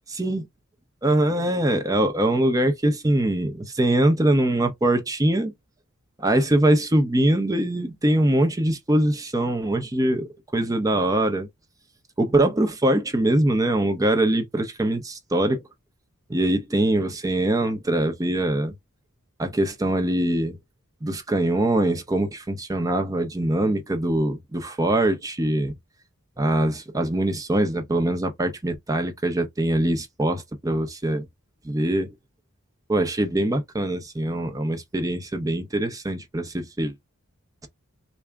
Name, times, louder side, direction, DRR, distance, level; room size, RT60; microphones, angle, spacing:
voice 1, 1.0-5.5 6.2-11.5 12.2-15.6 16.3-18.7 19.4-20.6 21.0-25.7 26.4-31.3 31.6-32.1 32.9-36.9, right 1 dB, 15° right, 0.6 m, -23 dB
3.4 x 2.0 x 3.5 m
head